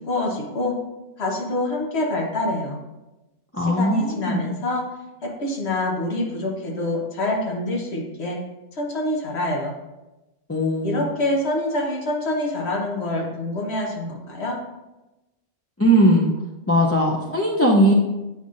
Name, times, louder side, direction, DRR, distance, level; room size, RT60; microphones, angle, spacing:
voice 1, 0.1-0.7 1.2-2.8 3.6-4.8 5.2-8.4 8.7-9.7 10.8-14.6, left 1 dB, 65° left, 0 dB, 1.4 m, -26 dB
voice 2, 3.5-4.5 10.5-11.1 15.8-16.3 16.7-17.9, equal, 25° left, -2 dB, 0.3 m, -19 dB
7.9 x 5.4 x 2.5 m, 1.0 s
omnidirectional pair, 1.2 m